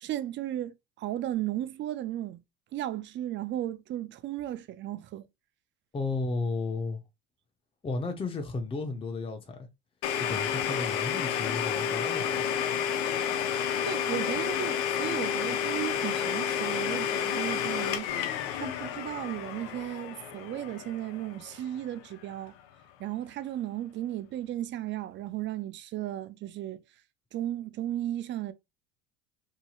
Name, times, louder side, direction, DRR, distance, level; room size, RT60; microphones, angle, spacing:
voice 1, 0.0-2.4 2.7-5.3 13.8-18.1 18.5-22.5 23.0-26.8 27.3-28.5, right 13 dB, 40° right, 0.4 m, -35 dB
voice 2, 5.9-7.0 7.8-9.6 10.2-12.4, left 3 dB, 15° left, 0.7 m, -33 dB
Domestic sounds home sounds, 10.0-21.7, left 8 dB, 70° left, 0.7 m, -30 dB
2.8 x 2.7 x 2.3 m
hypercardioid pair, 85°, 31 cm